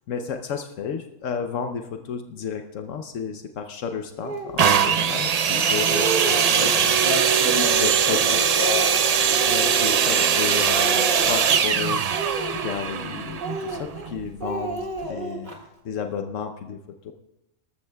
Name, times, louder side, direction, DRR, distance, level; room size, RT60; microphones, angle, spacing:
voice 1, 0.1-6.9 7.7-8.4 9.5-15.5 15.8-17.1, left 7 dB, 80° left, 6 dB, 1.1 m, -32 dB
Speech, 4.2-4.6 5.3-5.4 5.7-6.6 7.0-7.6 8.1-10.4 10.7-11.6 12.1-13.0 13.4-14.1 14.4-15.6, right 3 dB, 35° right, 1.9 m, -32 dB
sound 1, 4.6-14.3 15.0-15.1, right 7 dB, 75° right, 0.3 m, -21 dB
voice 2, 6.6-8.9, left 3 dB, 30° left, -2 dB, 2.0 m, -30 dB
19.5 x 13.5 x 2.3 m, 0.89 s
omnidirectional pair, 1.3 m